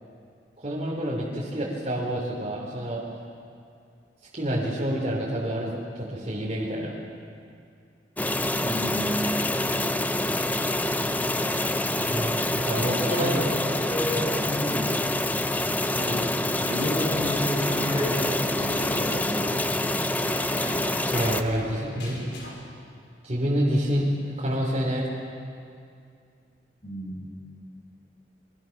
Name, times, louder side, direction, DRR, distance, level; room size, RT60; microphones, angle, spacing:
voice 1, 0.6-3.0 4.3-5.7 6.0-6.9 12.0-13.3 21.1-22.2 23.2-25.1, equal, 35° right, -5 dB, 3.8 m, -28 dB
sound 1, 8.2-21.4, left 1 dB, 10° left, 0.7 m, -26 dB
voice 2, 8.6-9.2 12.7-14.9 16.0-16.2 16.6-19.6 26.8-27.3, left 1 dB, 40° left, -2 dB, 6.9 m, -30 dB
sound 2, 17.1-22.6, left 1 dB, 85° left, 5.3 m, -40 dB
28.5 x 23.5 x 6.1 m, 2.4 s
head